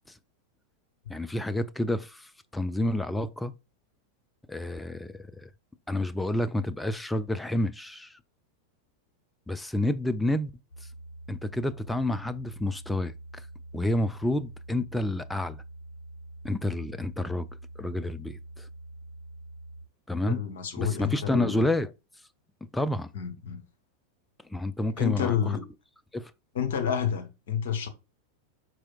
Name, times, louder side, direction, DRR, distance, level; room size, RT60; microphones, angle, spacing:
voice 1, 1.1-3.5 4.5-5.5 5.9-8.1 9.5-10.5 11.3-13.1 13.7-15.6 16.4-17.5 17.8-18.7 20.1-20.4 20.8-21.9 22.7-23.1 24.5-25.4 26.1-26.3, left 1 dB, 5° left, 0.4 m, -29 dB
sound 1, 10.7-19.9, right 2 dB, 75° left, 0.7 m, -45 dB
voice 2, 20.1-21.6 23.1-23.6 25.0-25.6 26.5-27.9, left 8 dB, 60° left, 1.2 m, -29 dB
4.8 x 4.4 x 2.4 m
figure-of-eight pair, 90°, 0 cm